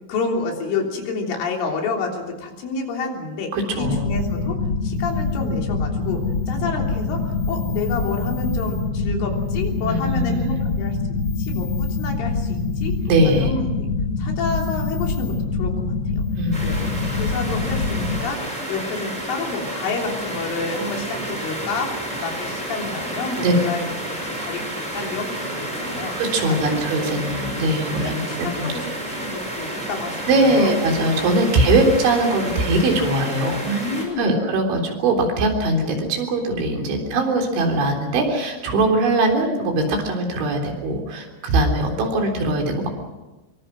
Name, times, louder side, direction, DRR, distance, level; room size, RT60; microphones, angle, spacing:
voice 1, 0.1-11.0 11.4-13.0 13.3-13.9 14.2-15.7 16.1-16.2 16.6-16.9 17.1-24.7 24.9-26.2 26.5-26.8 27.5-27.6 28.0-30.7 33.6-34.4, left 3 dB, 90° left, 1 dB, 5.9 m, -29 dB
voice 2, 3.5-4.1 9.8-10.6 13.1-13.5 16.4-16.8 23.4-23.5 26.2-28.2 28.6-28.7 30.3-33.8 34.2-42.9, right 2 dB, 75° right, 3 dB, 6.1 m, -21 dB
sound 1, 3.8-18.2, left 4 dB, 65° left, 1.5 m, -25 dB
sound 2, 16.5-34.0, right 1 dB, 10° right, 4.9 m, -31 dB
25.0 x 24.0 x 6.3 m, 1.1 s
omnidirectional pair, 5.4 m